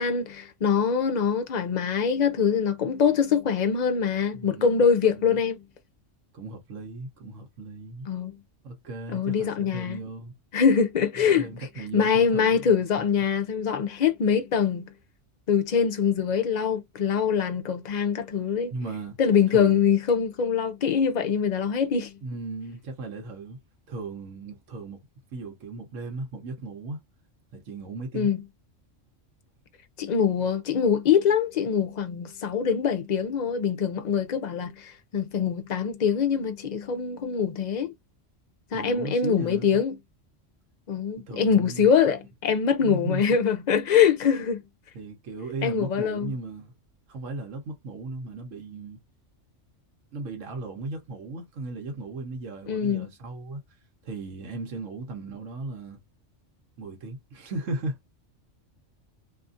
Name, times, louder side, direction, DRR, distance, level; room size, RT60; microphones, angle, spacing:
voice 1, 0.0-5.6 8.1-8.3 9.1-10.0 10.5-11.5 11.9-14.9 15.5-18.7 19.2-22.1 28.1-28.4 30.0-37.9 38.7-39.9 40.9-44.6 45.6-46.3 52.7-53.1, left 7 dB, 55° left, 0.5 m, -24 dB
voice 2, 4.3-4.7 5.1-5.3 6.3-8.1 8.6-10.4 11.4-13.1 18.7-19.2 19.5-19.9 22.2-23.6 23.9-25.0 25.3-27.0 27.5-28.3 38.7-39.8 41.2-41.9 42.8-43.2 44.9-46.7 47.1-49.0 50.1-53.6 54.0-56.0 56.8-58.0, right 2 dB, 80° right, 1.2 m, -36 dB
2.8 x 2.5 x 2.5 m
omnidirectional pair, 1.3 m